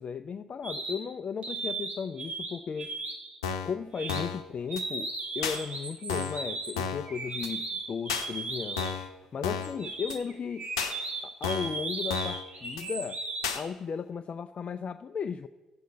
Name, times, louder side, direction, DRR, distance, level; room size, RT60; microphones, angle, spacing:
voice 1, 0.0-2.9 3.6-5.1 5.4-8.9 9.3-10.7 11.2-13.2 13.5-15.5, left 6 dB, 50° left, 10 dB, 0.5 m, -35 dB
sound 1, 0.6-1.0 1.4-2.5 2.8-3.3 3.9-4.2 4.7-9.0 9.6-13.6, right 3 dB, 50° right, 3.3 m, -36 dB
sound 2, 3.4-3.8 4.1-4.4 4.8-4.9 5.4-5.6 6.1-6.4 6.8-7.1 7.4-7.5 8.1-8.3 8.8-9.1 9.4-9.8 10.1-10.2 10.8-10.9 11.4-11.8 12.1-12.4 12.8-12.9 13.4-13.6, left 6 dB, 90° left, 0.8 m, -32 dB
12.5 x 8.2 x 7.9 m, 1.2 s
hypercardioid pair, 45°, 3 cm